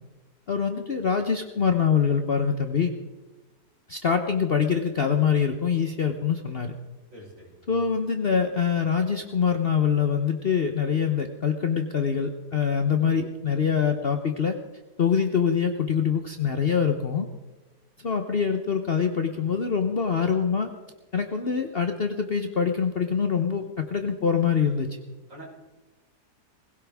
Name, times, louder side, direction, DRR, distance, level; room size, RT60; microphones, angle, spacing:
voice 1, 0.5-2.9 3.9-6.7 7.7-14.6 15.0-17.3 18.0-20.7 21.1-24.9, left 6 dB, 45° left, 5 dB, 0.9 m, -24 dB
voice 2, 7.1-7.9 25.3-25.5, right 1 dB, 50° right, -4 dB, 5.4 m, -46 dB
20.5 x 17.0 x 3.5 m, 1.2 s
omnidirectional pair, 1.7 m